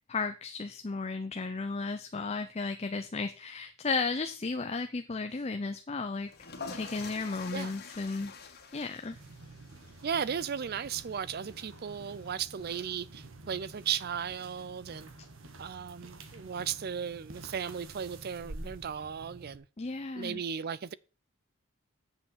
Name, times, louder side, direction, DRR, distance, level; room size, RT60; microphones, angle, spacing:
voice 1, 0.1-6.3 6.7-8.3 8.7-9.2 19.8-20.4, left 4 dB, 30° left, 0.6 m, -34 dB
sound 1, 6.2-13.0, left 4 dB, 45° left, 1.9 m, -47 dB
sound 2, 9.1-19.6, right 2 dB, 65° right, 1.4 m, -49 dB
voice 2, 10.0-15.1 15.6-19.7 20.1-20.9, right 7 dB, 45° right, 0.4 m, -36 dB
7.7 x 7.0 x 7.3 m
head